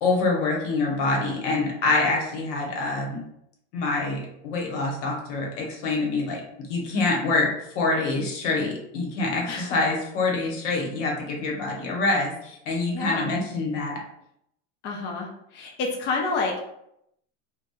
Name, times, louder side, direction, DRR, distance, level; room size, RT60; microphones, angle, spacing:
voice 1, 0.0-3.2 3.7-6.4 6.7-7.5 7.8-12.3 12.7-14.0, left 3 dB, 70° left, 0 dB, 0.9 m, -25 dB
voice 2, 9.5-9.8 12.9-13.3 14.8-15.3 15.5-16.6, left 3 dB, 30° left, 0 dB, 0.4 m, -28 dB
2.7 x 2.1 x 2.2 m, 0.76 s
supercardioid pair, 115°, 38 cm